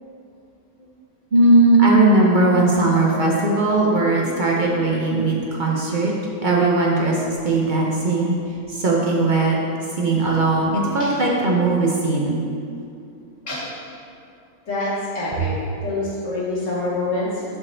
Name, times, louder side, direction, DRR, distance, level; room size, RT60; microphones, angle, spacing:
voice 1, 1.3-6.1 6.4-7.2 7.4-8.3 8.7-9.6 10.0-12.4, right 2 dB, 45° right, -3 dB, 0.7 m, -18 dB
voice 2, 14.7-15.5 15.8-17.6, left 2 dB, 55° left, -7 dB, 1.6 m, -26 dB
6.6 x 4.8 x 4.3 m, 2.5 s
omnidirectional pair, 1.6 m